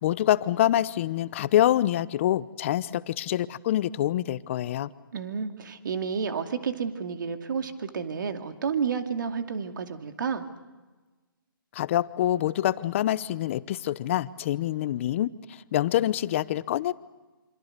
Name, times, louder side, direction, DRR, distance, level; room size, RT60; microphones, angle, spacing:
voice 1, 0.0-4.9 11.7-16.9, left 12 dB, 35° left, 17 dB, 0.8 m, -26 dB
voice 2, 4.8-10.4, right 6 dB, 60° right, 7 dB, 2.5 m, -31 dB
27.0 x 26.5 x 6.7 m, 1.2 s
hypercardioid pair, 155°, 12 cm